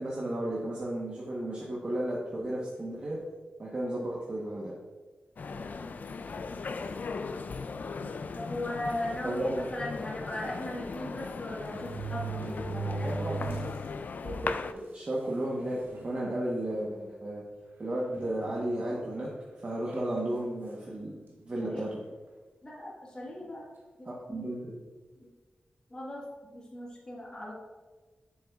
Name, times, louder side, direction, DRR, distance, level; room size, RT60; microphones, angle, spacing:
voice 1, 0.0-3.2 3.6-4.8 9.2-9.6 13.0-13.6 14.2-15.8 16.0-17.4 17.8-19.3 19.6-21.9 24.0-24.8, right 1 dB, 40° right, -5 dB, 1.1 m, -33 dB
sound 1, 5.4-14.7, left 4 dB, 60° left, 0.3 m, -38 dB
voice 2, 5.4-7.2 8.3-13.4 21.6-21.9 22.6-23.6 24.0-24.5 25.2-25.3 25.9-27.5, left 1 dB, 25° left, -4 dB, 1.5 m, -39 dB
sound 2, 8.0-8.3 9.0-9.1 9.4-9.5 10.8-10.9 11.6-13.9 14.3-14.4 15.2-15.3 15.7-16.1 16.7-16.9 18.1-19.0 19.9-20.2, right 4 dB, 85° right, 1.1 m, -38 dB
7.8 x 6.9 x 2.4 m, 1.3 s
wide cardioid pair, 90°, 3 cm